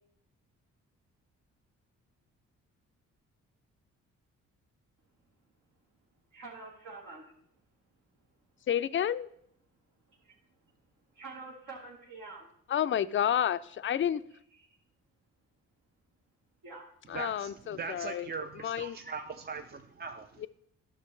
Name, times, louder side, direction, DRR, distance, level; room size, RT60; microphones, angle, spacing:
voice 1, 6.3-7.4 10.1-10.4 11.1-12.5 14.5-14.7 16.6-16.8, right 3 dB, 70° right, -3 dB, 1.2 m, -47 dB
voice 2, 8.7-9.3 12.7-14.2 17.1-18.3 18.6-19.0, left 9 dB, 40° left, 14 dB, 0.4 m, -30 dB
voice 3, 17.1-20.5, right 5 dB, 30° right, 7 dB, 0.4 m, -40 dB
9.8 x 6.1 x 3.2 m, 0.68 s
supercardioid pair, 55°, 33 cm